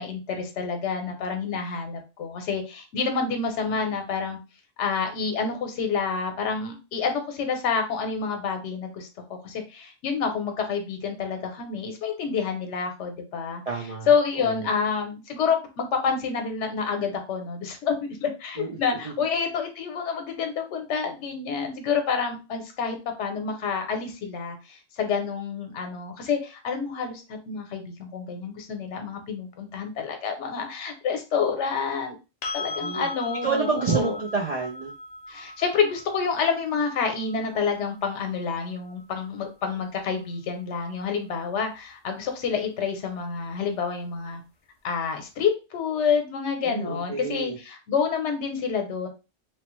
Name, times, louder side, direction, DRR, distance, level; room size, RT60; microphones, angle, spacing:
voice 1, 0.0-4.4 4.8-13.6 14.1-32.2 32.5-34.2 35.3-44.4 44.8-49.1, left 6 dB, 80° left, 5 dB, 1.0 m, -28 dB
voice 2, 13.7-14.7 18.6-18.8 19.0-19.1 32.8-33.1 33.4-34.9 46.6-47.6, right 5 dB, 50° right, -2 dB, 0.4 m, -29 dB
sound 1, 32.4-40.2 43.1-43.2, left 2 dB, 60° left, 0.4 m, -39 dB
3.0 x 2.0 x 3.0 m, 0.29 s
omnidirectional pair, 1.2 m